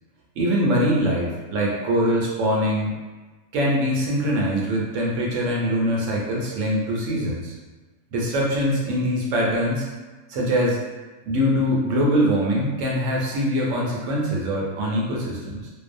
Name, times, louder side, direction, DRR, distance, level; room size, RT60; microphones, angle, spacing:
voice 1, 0.4-3.0 3.5-7.5 8.1-9.9 10.3-10.8 11.3-15.7, equal, 70° right, -3 dB, 0.9 m, -23 dB
2.5 x 2.0 x 2.5 m, 1.3 s
omnidirectional pair, 1.5 m